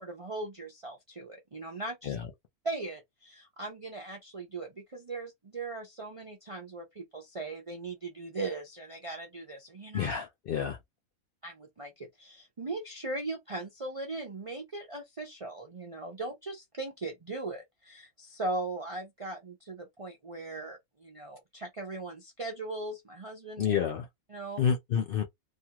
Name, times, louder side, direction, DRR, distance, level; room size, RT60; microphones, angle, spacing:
voice 1, 0.0-2.2 2.6-10.1 11.4-23.7 24.3-24.6, right 2 dB, 55° right, 0.3 m, -39 dB
voice 2, 9.9-10.8 23.6-24.1 24.6-25.2, left 7 dB, 85° left, 0.5 m, -29 dB
2.6 x 2.3 x 2.8 m
omnidirectional pair, 1.5 m